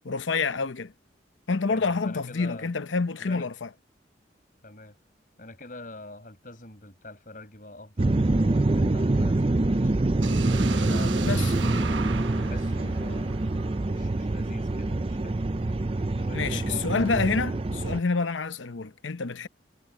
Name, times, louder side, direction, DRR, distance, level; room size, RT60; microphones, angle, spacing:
voice 1, 0.0-0.9 1.5-3.7 11.2-11.5 16.3-19.5, left 4 dB, 85° left, 0.8 m, -28 dB
voice 2, 1.7-2.7 3.2-3.5 4.6-5.0 5.4-10.4 10.7-11.6 12.5-15.4 16.2-16.9, left 2 dB, 45° left, 6.4 m, -45 dB
sound 1, 8.0-18.0, right 2 dB, 30° right, 0.5 m, -25 dB
sound 2, 10.2-14.1, right 5 dB, 85° right, 1.2 m, -37 dB
head